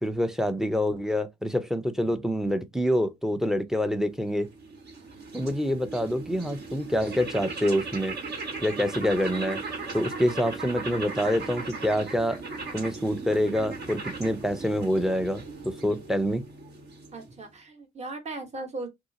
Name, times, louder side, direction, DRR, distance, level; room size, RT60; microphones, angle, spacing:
voice 1, 0.0-4.5 5.3-8.2 8.6-9.6 9.9-12.4 12.7-16.4, equal, ahead, 0.5 m, -26 dB
sound 1, 4.1-17.5, right 3 dB, 55° right, 1.2 m, -38 dB
voice 2, 17.1-18.9, right 2 dB, 35° right, 1.1 m, -37 dB
3.2 x 2.7 x 2.6 m
cardioid pair, 90°, 20 cm